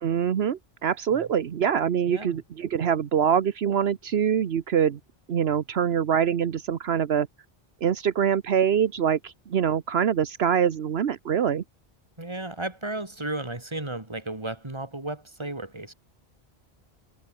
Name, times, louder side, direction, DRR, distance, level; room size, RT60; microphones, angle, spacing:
voice 1, 0.0-5.0 5.3-7.3 7.8-11.6, right 8 dB, 75° right, 1.2 m, -24 dB
voice 2, 12.2-15.9, right 2 dB, 25° right, 2.7 m, -34 dB
omnidirectional pair, 1.1 m